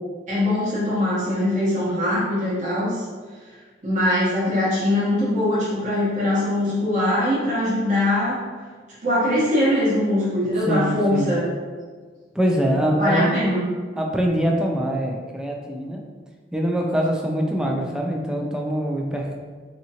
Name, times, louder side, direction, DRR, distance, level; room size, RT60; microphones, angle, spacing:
voice 1, 0.3-3.0 3.8-8.4 9.0-11.4 13.0-13.6, left 1 dB, 40° right, -9 dB, 1.0 m, -22 dB
voice 2, 10.7-11.3 12.4-13.4 14.0-16.0 16.5-19.3, equal, 5° right, 0 dB, 0.3 m, -23 dB
3.6 x 2.9 x 2.7 m, 1.5 s
head